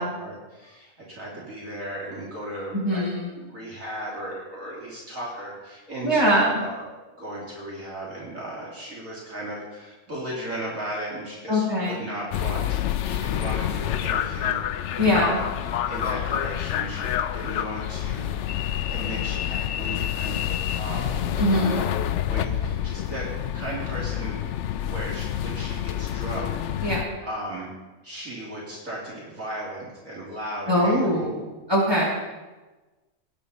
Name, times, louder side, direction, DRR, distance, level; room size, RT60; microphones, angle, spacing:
voice 1, 0.0-3.0 3.4-6.9 7.2-15.5 15.9-21.4 21.7-21.8 22.3-26.5 27.2-27.7 28.0-31.2, right 1 dB, 65° right, -5 dB, 3.3 m, -36 dB
voice 2, 2.7-3.3 6.0-6.6 11.5-12.0 15.0-15.4 21.4-21.9 26.8-27.0 30.7-32.0, equal, 15° right, -6 dB, 5.4 m, -22 dB
sound 1, 12.3-27.0, left 11 dB, 65° left, 0.8 m, -28 dB
19.5 x 9.9 x 4.1 m, 1.2 s
omnidirectional pair, 1.5 m